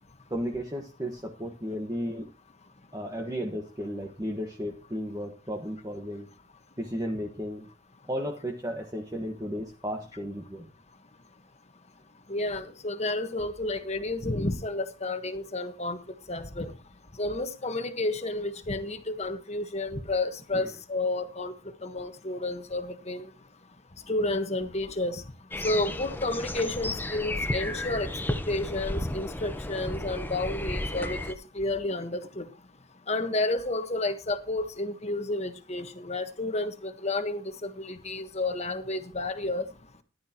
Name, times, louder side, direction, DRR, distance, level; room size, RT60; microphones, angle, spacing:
voice 1, 0.3-2.2 2.9-6.3 6.8-7.7 8.1-10.7 20.5-20.7, equal, 15° right, 1.5 m, -34 dB
voice 2, 12.3-16.0 16.3-16.7 17.2-21.5 21.8-23.3 24.1-25.2 25.6-28.1 28.5-32.5 33.1-39.6, left 2 dB, 35° left, 1.3 m, -31 dB
sound 1, 25.5-31.3, left 1 dB, 10° left, 0.9 m, -33 dB
14.5 x 11.5 x 3.0 m
head